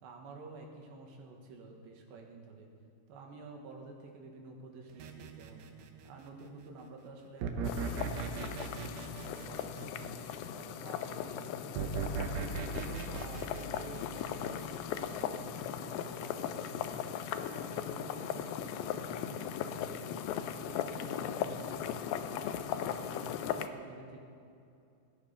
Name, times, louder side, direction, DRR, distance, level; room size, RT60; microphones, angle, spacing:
voice 1, 0.0-2.7 3.1-5.7 6.0-10.2 10.5-11.8 12.2-17.0 17.5-20.2 20.6-24.2, right 3 dB, 85° right, 1 dB, 3.7 m, -50 dB
sound 1, 5.0-6.2 7.4-10.5 11.8-15.0, right 5 dB, 70° right, 2.6 m, -38 dB
sound 2, 7.7-23.7, left 9 dB, 80° left, 2.2 m, -38 dB
18.5 x 10.0 x 5.7 m, 2.6 s
omnidirectional pair, 4.9 m